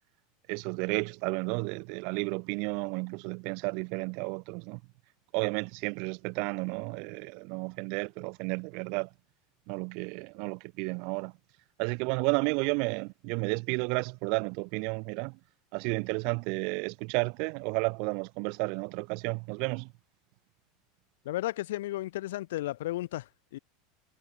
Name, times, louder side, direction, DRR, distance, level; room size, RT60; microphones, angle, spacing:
voice 1, 0.5-4.8 5.3-9.1 9.7-11.3 11.8-15.4 15.7-19.9, right 35 dB, 60° right, 0.5 m, -32 dB
voice 2, 21.2-23.6, left 16 dB, 80° left, 0.6 m, -34 dB
supercardioid pair, 120°, 0 cm